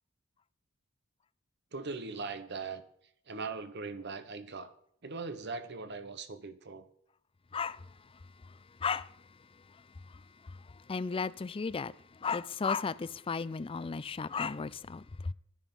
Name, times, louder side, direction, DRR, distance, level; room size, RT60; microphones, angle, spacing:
voice 1, 1.7-2.8 3.3-4.7 5.0-6.9, right 4 dB, 55° right, 1.0 m, -40 dB
voice 2, 7.5-7.9 8.4-8.5 8.8-9.2 9.7-9.8 10.1-15.3, left 5 dB, 25° left, 0.4 m, -35 dB
11.0 x 9.8 x 5.4 m
head